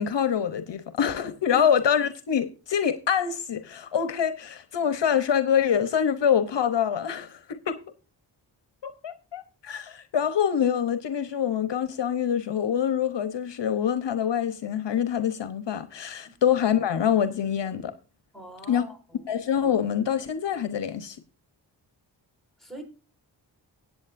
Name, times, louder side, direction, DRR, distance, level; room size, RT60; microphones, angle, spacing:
voice 1, 0.0-7.8 8.8-17.9 18.7-18.8 19.3-21.2, left 8 dB, 70° left, 0.9 m, -25 dB
voice 2, 1.4-2.0 18.3-19.3 22.6-22.8, right 1 dB, ahead, 4.3 m, -42 dB
16.5 x 8.5 x 2.6 m
cardioid pair, 50°, 44 cm